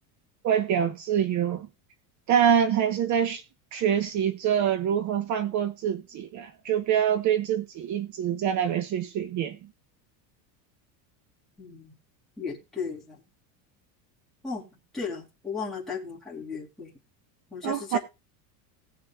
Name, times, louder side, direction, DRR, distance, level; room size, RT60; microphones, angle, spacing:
voice 1, 0.4-1.7 2.3-3.4 3.7-9.6 17.6-18.0, right 9 dB, 40° right, 1.0 m, -25 dB
voice 2, 11.6-11.9 12.4-13.2 14.4-14.7 14.9-16.9 17.5-18.0, left 5 dB, ahead, 2.9 m, -35 dB
18.5 x 6.5 x 2.3 m
supercardioid pair, 145°, 45 cm